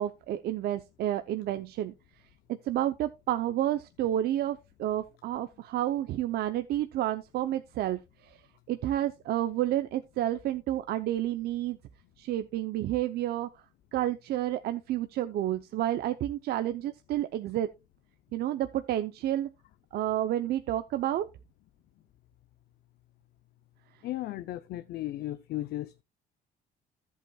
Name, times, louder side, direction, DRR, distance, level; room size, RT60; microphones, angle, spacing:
voice 1, 0.0-1.9 2.5-8.4 8.7-11.8 12.2-13.5 13.9-17.7 18.3-19.5 19.9-21.3, right 12 dB, 70° right, 0.7 m, -30 dB
voice 2, 24.0-26.0, left 15 dB, 70° left, 0.7 m, -35 dB
14.0 x 8.2 x 2.3 m
cardioid pair, 110°, 17 cm